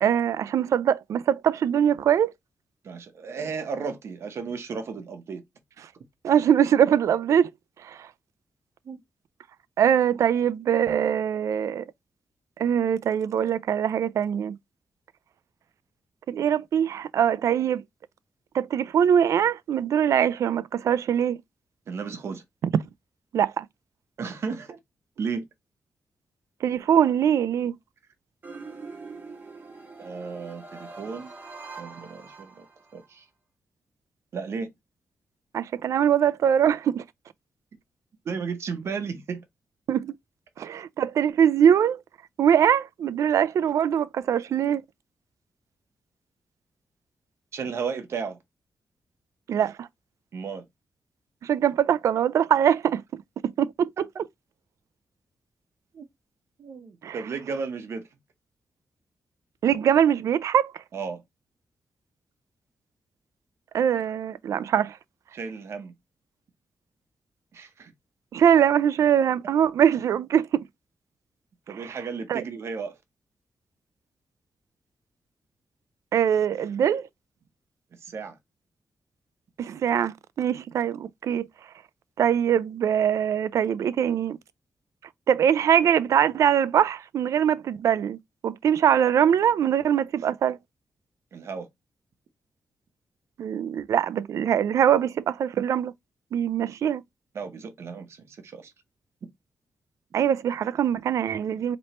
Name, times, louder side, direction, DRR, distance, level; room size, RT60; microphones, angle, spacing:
voice 1, 0.0-2.3 6.2-7.5 7.8-8.0 9.8-11.8 12.6-14.6 16.3-17.8 18.5-21.4 23.3-23.7 26.6-27.8 35.5-37.0 39.9-40.1 40.6-42.0 42.4-44.8 49.5-49.9 51.4-53.9 57.0-57.2 59.6-60.7 63.7-65.0 68.3-70.6 72.3-72.4 76.1-77.1 79.6-81.5 82.2-84.4 85.3-88.2 88.4-90.6 93.4-95.9 96.3-97.0 100.1-101.8, right 9 dB, 70° right, 0.3 m, -22 dB
voice 2, 2.8-5.4 8.8-9.0 21.9-22.4 24.2-24.8 25.2-25.4 30.0-31.3 31.8-32.7 32.9-33.3 34.3-34.7 38.2-39.4 47.5-48.4 50.3-50.6 55.9-56.0 56.6-58.1 60.9-61.2 65.3-65.9 67.5-67.9 71.7-73.0 78.0-78.4 91.3-91.7 97.3-98.7, right 5 dB, 55° right, 0.8 m, -34 dB
sound 1, 28.4-33.1, right 4 dB, 35° right, 1.0 m, -43 dB
4.3 x 3.0 x 2.9 m
wide cardioid pair, 175°, 5 cm